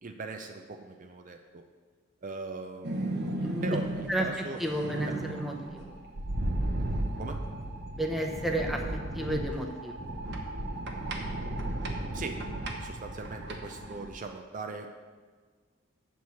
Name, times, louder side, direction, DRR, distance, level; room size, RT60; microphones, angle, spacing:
voice 1, 0.0-1.6 2.2-3.3 3.6-4.6 5.0-5.1 7.2-7.4 12.1-12.4 12.8-14.9, right 3 dB, 40° right, 5 dB, 0.5 m, -39 dB
sound 1, 2.8-14.1, right 1 dB, 55° right, 0.9 m, -35 dB
voice 2, 3.4-3.8 4.1-5.9 7.9-10.1, right 1 dB, ahead, 1 dB, 0.7 m, -32 dB
7.9 x 4.6 x 7.0 m, 1.5 s
head